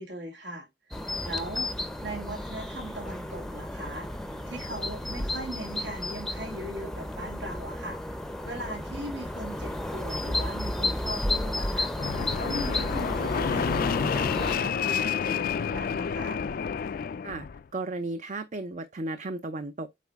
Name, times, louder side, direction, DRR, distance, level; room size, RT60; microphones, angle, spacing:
voice 1, 0.0-1.7 2.0-4.1 4.5-16.4, right 1 dB, 80° right, 2.5 m, -39 dB
sound 1, 0.9-14.6, left 1 dB, 5° left, 0.6 m, -33 dB
Fixed-wing aircraft airplane, 12.0-17.6, left 6 dB, 50° left, 0.3 m, -29 dB
voice 2, 17.7-19.9, right 2 dB, 40° right, 0.6 m, -34 dB
8.4 x 4.1 x 3.5 m
head